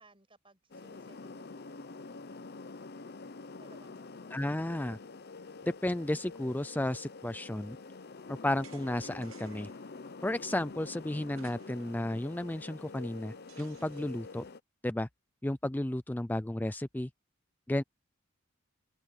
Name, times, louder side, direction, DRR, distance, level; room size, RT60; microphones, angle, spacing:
voice 1, 0.0-2.4 3.5-4.3, right 2 dB, 25° right, 7.9 m, -62 dB
sound 1, 0.7-14.6, left 3 dB, 50° left, 0.7 m, -47 dB
voice 2, 4.3-5.0 5.6-7.8 8.3-9.7 10.2-14.4 14.8-15.1 15.4-17.1 17.7-17.8, left 1 dB, 10° left, 0.4 m, -33 dB
sound 2, 8.6-9.9 11.3-12.1 12.4-12.5 13.5-14.3, right 8 dB, 85° right, 1.3 m, -58 dB
head